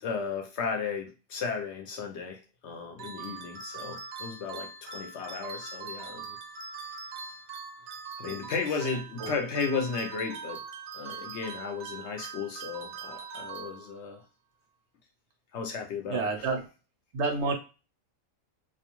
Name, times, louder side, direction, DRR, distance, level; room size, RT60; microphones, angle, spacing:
voice 1, 0.0-6.4 8.2-10.6 10.9-14.2 15.5-16.5, left 5 dB, 65° left, 0.8 m, -34 dB
sound 1, 3.0-14.2, right 5 dB, 90° right, 1.0 m, -42 dB
voice 2, 16.1-16.6 17.1-17.5, right 4 dB, 65° right, 0.8 m, -28 dB
2.5 x 2.2 x 3.0 m
omnidirectional pair, 1.4 m